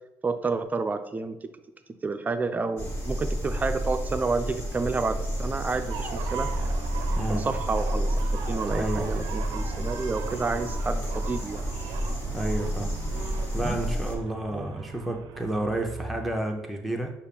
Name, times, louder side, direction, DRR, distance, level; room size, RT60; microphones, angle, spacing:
voice 1, 0.2-1.4 2.0-6.5 7.3-8.1 8.5-11.6 13.6-13.8 14.5-14.9, right 4 dB, 25° right, 8 dB, 0.4 m, -30 dB
sound 1, 2.8-14.2, equal, 40° left, 1.6 m, -30 dB
sound 2, 5.9-16.3, right 7 dB, 85° right, 0.4 m, -39 dB
voice 2, 7.2-7.5 8.7-9.1 12.3-12.9 13.5-17.1, right 1 dB, ahead, 1 dB, 0.7 m, -30 dB
5.6 x 2.5 x 3.4 m, 0.87 s
cardioid pair, 90°, 7 cm